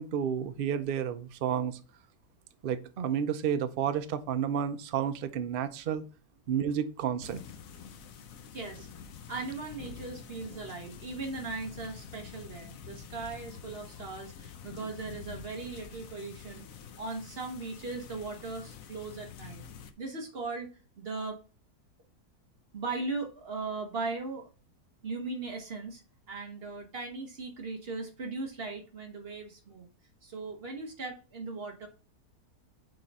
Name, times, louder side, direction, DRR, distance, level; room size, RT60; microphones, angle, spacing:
voice 1, 0.0-1.8 2.6-6.0 6.5-7.4, right 8 dB, 75° right, 10 dB, 0.5 m, -31 dB
sound 1, 7.2-19.9, left 7 dB, 65° left, 1.0 m, -47 dB
voice 2, 8.5-8.9 9.3-16.6 17.0-19.6 20.0-20.7 21.0-21.4 22.7-24.5 25.0-26.0 26.3-29.9 30.2-31.9, right 3 dB, 40° right, 3 dB, 1.1 m, -38 dB
6.6 x 3.8 x 4.1 m, 0.35 s
omnidirectional pair, 1.7 m